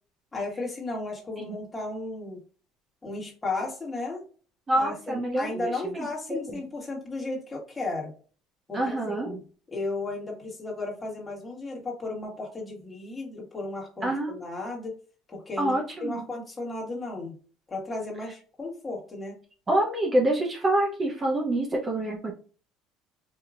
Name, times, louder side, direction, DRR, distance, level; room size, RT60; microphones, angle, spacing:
voice 1, 0.3-2.4 3.0-4.2 4.8-8.1 8.7-9.3 9.7-15.0 15.3-17.3 17.7-19.4, left 2 dB, 15° left, -3 dB, 1.7 m, -34 dB
voice 2, 4.7-5.7 6.5-6.6 8.7-9.4 14.0-14.3 15.6-16.2 19.7-22.3, right 1 dB, 25° right, 0 dB, 0.8 m, -26 dB
4.6 x 2.8 x 2.5 m, 0.39 s
cardioid pair, 125°, 0 cm